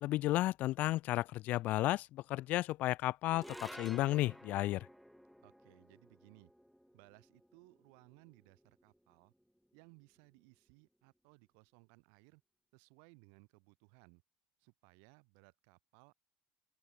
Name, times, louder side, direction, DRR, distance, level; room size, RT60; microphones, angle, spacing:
voice 1, 0.0-4.9, left 16 dB, 45° left, 0.3 m, -33 dB
sound 1, 3.3-9.7, equal, ahead, 3.6 m, -54 dB
voice 2, 5.4-6.5 6.9-9.3 9.7-12.4 12.7-14.2 14.6-16.1, right 40 dB or more, 85° right, 5.0 m, -63 dB
open air
cardioid pair, 175°, 4 cm